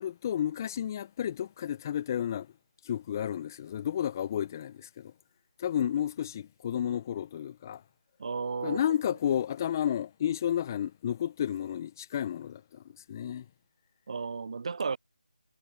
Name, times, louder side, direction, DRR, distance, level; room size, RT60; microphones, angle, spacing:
voice 1, 0.0-2.5 2.9-5.1 5.6-7.8 8.6-12.6 13.1-13.4, left 10 dB, 20° left, 0.9 m, -31 dB
voice 2, 8.2-8.8 14.1-15.0, right 5 dB, 40° right, 0.5 m, -33 dB
figure-of-eight pair, 160°, 5 cm